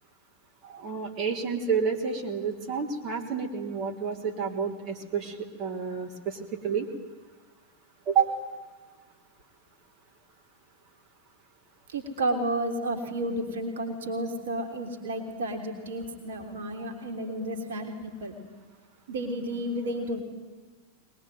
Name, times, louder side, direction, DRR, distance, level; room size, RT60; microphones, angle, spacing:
voice 1, 0.6-6.9 8.1-8.4 19.8-19.9, right 6 dB, 35° right, 1 dB, 3.6 m, -30 dB
voice 2, 11.9-18.3 19.1-20.2, right 1 dB, 60° right, 4 dB, 3.5 m, -32 dB
22.5 x 21.5 x 9.5 m, 1.3 s
figure-of-eight pair, 90°, 0 cm